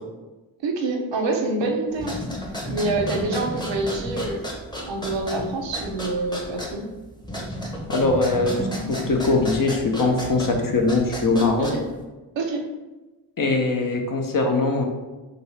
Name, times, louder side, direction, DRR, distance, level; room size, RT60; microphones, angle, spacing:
voice 1, 0.6-2.2 2.7-4.4 4.9-6.8 11.6-11.8 12.4-12.6, right 2 dB, 70° right, 2 dB, 0.7 m, -26 dB
sound 1, 1.9-12.0, equal, 10° left, 0.8 m, -32 dB
voice 2, 7.9-11.7 13.4-14.8, left 3 dB, 45° left, 2 dB, 0.7 m, -21 dB
2.6 x 2.6 x 3.2 m, 1.1 s
cardioid pair, 40°, 46 cm